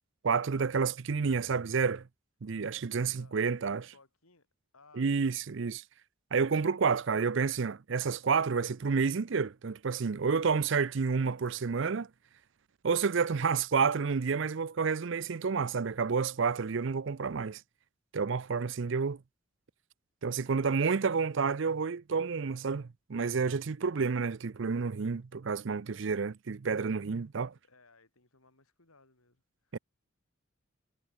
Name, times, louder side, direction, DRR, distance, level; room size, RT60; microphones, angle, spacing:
voice 1, 0.2-2.1 2.4-3.9 5.0-5.8 6.3-12.1 12.8-17.6 18.1-19.2 20.2-27.5 29.7-29.8, right 5 dB, 60° right, 0.5 m, -30 dB
voice 2, 3.1-3.4 3.9-4.5 4.7-5.4 20.8-21.6 27.3-29.8, left 3 dB, 85° left, 4.6 m, -63 dB
head